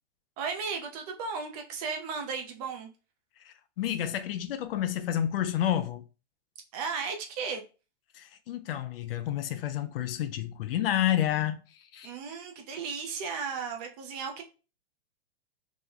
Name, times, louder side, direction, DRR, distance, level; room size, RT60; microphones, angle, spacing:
voice 1, 0.4-2.9 6.7-7.6 12.0-14.4, right 5 dB, 35° right, 0.6 m, -35 dB
voice 2, 3.4-6.0 8.1-11.6 11.9-12.1, left 11 dB, 55° left, 0.4 m, -30 dB
3.1 x 2.1 x 3.6 m
hypercardioid pair, 155°, 34 cm